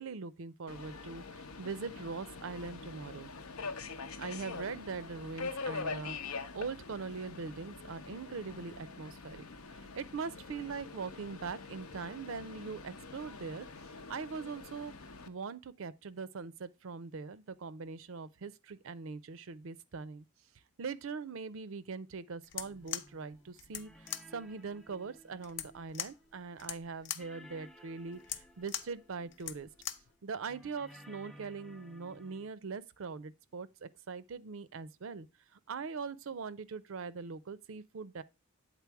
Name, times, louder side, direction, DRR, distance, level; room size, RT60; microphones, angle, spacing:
voice 1, 0.0-3.3 4.2-13.7 13.9-14.9 15.3-20.2 20.8-29.7 30.2-35.3 35.5-38.2, right 5 dB, 65° right, 0.5 m, -42 dB
Subway metro underground, 0.7-15.3, left 4 dB, 85° left, 0.8 m, -44 dB
sound 1, 22.4-30.2, left 10 dB, 55° left, 0.5 m, -43 dB
sound 2, 22.6-26.9 27.2-30.0 30.5-32.5, equal, ahead, 0.4 m, -57 dB
8.3 x 4.0 x 4.6 m
head